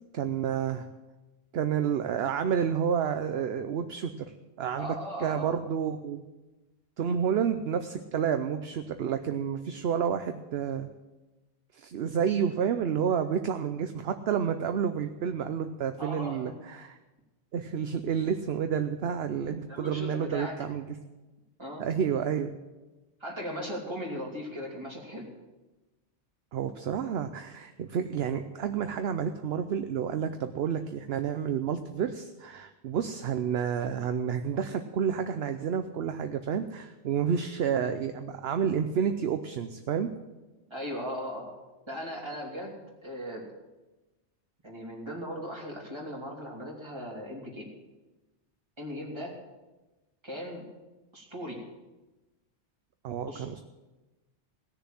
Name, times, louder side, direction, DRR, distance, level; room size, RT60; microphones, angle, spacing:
voice 1, 0.1-0.9 1.5-4.3 4.6-6.2 7.0-10.9 11.7-17.0 17.5-20.8 21.8-22.5 26.5-40.1 53.0-53.6, right 8 dB, 65° right, 8 dB, 0.9 m, -30 dB
voice 2, 4.8-5.6 16.0-16.4 16.6-16.7 19.7-20.5 21.6-21.8 23.2-25.3 40.7-41.5 41.9-43.5 44.6-47.7 48.8-49.3 50.2-50.6 51.1-51.6 53.3-53.6, equal, 25° right, -2 dB, 3.1 m, -38 dB
17.5 x 6.9 x 7.5 m, 1.1 s
omnidirectional pair, 1.2 m